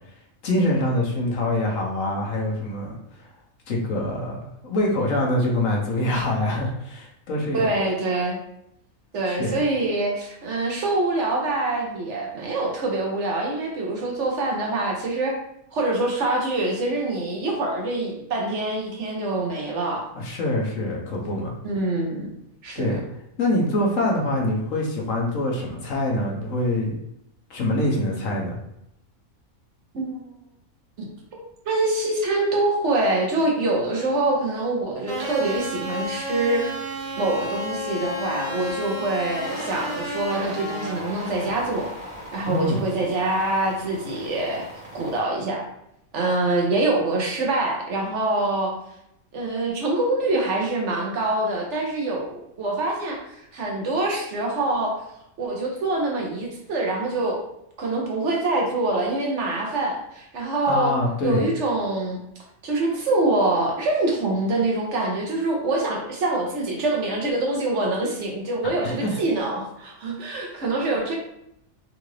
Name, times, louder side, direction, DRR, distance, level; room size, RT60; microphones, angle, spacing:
voice 1, 0.4-3.0 3.7-7.7 9.3-9.6 20.1-21.5 22.7-23.0 23.4-27.0 27.5-28.6 42.5-42.8 60.7-61.5 68.6-69.2, left 1 dB, 70° left, -1 dB, 1.1 m, -25 dB
voice 2, 7.5-8.4 9.1-15.3 15.7-20.1 21.6-22.3 22.6-23.0 29.9-30.3 31.3-36.6 37.2-41.9 42.3-44.7 44.9-45.6 46.1-48.7 49.3-54.9 55.4-57.4 57.8-61.0 61.2-62.2 62.6-71.1, right 2 dB, 60° right, -1 dB, 1.0 m, -25 dB
sound 1, 35.1-45.2, equal, 25° right, 1.2 m, -33 dB
3.7 x 2.4 x 3.1 m, 0.79 s
omnidirectional pair, 1.5 m